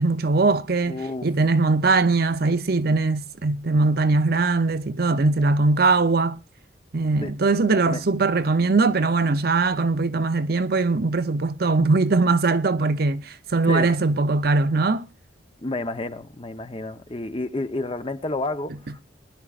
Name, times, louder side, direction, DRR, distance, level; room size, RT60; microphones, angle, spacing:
voice 1, 0.0-6.4 6.9-15.1, right 3 dB, 55° right, 0.7 m, -21 dB
voice 2, 0.9-1.3 7.2-7.3 7.9-8.0 13.6-13.9 15.6-19.0, left 2 dB, 30° left, 0.9 m, -30 dB
21.0 x 11.5 x 2.5 m
head